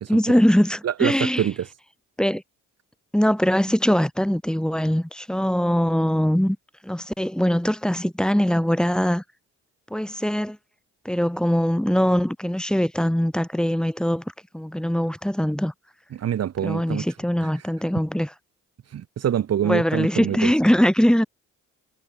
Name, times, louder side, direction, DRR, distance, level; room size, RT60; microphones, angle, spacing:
voice 1, 0.1-1.5 2.2-2.4 3.1-6.6 6.8-9.2 9.9-10.6 11.1-14.2 14.5-15.7 16.6-18.3 19.6-21.2, equal, 5° left, 3.3 m, -22 dB
voice 2, 0.8-1.7 16.1-17.0 18.9-20.5, right 10 dB, 55° right, 1.4 m, -25 dB
cardioid pair, 90°, 30 cm